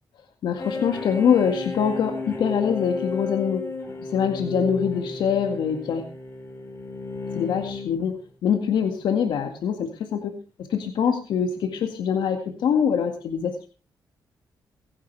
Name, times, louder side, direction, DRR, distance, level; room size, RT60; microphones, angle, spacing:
voice 1, 0.4-3.7 4.1-6.1 7.4-10.3 10.7-13.7, left 7 dB, 90° left, 5 dB, 2.0 m, -24 dB
sound 1, 0.6-8.2, left 3 dB, 30° left, 4.6 m, -33 dB
22.5 x 11.0 x 3.4 m, 0.34 s
cardioid pair, 110°, 8 cm